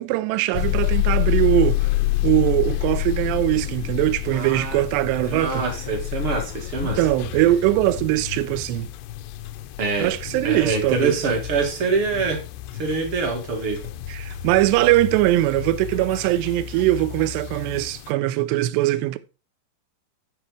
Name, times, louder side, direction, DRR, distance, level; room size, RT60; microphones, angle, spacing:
voice 1, 0.0-1.9 2.2-5.6 6.8-8.9 10.0-11.2 14.1-19.2, right 16 dB, 80° right, 2.6 m, -21 dB
sound 1, 0.5-18.1, left 15 dB, 80° left, 2.5 m, -28 dB
voice 2, 4.3-4.8 5.2-7.0 9.8-10.1 10.4-12.4 12.8-13.8, right 4 dB, 50° right, 1.7 m, -25 dB
11.5 x 5.0 x 4.7 m
omnidirectional pair, 5.4 m